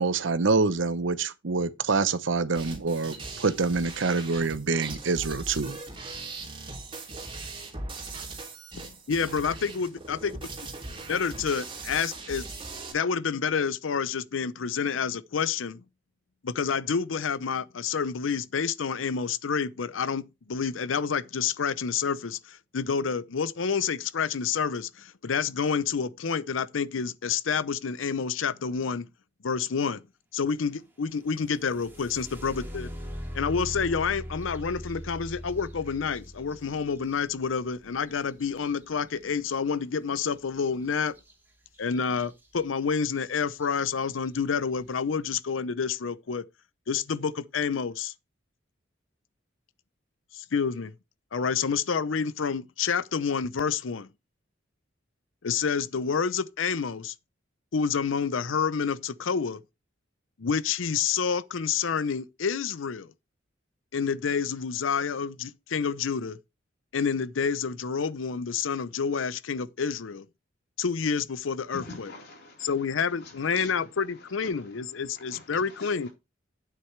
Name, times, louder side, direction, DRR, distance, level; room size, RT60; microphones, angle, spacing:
voice 1, 0.0-5.8, right 4 dB, 70° right, 0.8 m, -26 dB
sound 1, 2.5-12.9, right 3 dB, 30° right, 2.9 m, -40 dB
voice 2, 8.7-10.3 11.1-12.5 12.9-15.8 16.4-29.1 29.4-30.0 30.3-32.9 33.3-41.1 41.8-46.4 46.9-48.1 50.3-50.9 51.3-54.1 55.4-57.1 57.7-59.6 60.4-63.1 63.9-66.4 66.9-70.3 70.8-72.1 72.6-76.1, left 6 dB, 90° left, 0.6 m, -28 dB
sound 2, 31.3-39.1 41.2-41.3 41.7-42.3 42.9-43.0 43.5-43.9, equal, 10° right, 2.5 m, -41 dB
voice 3, 71.7-76.1, left 3 dB, 60° left, 4.0 m, -47 dB
9.1 x 7.9 x 3.2 m
head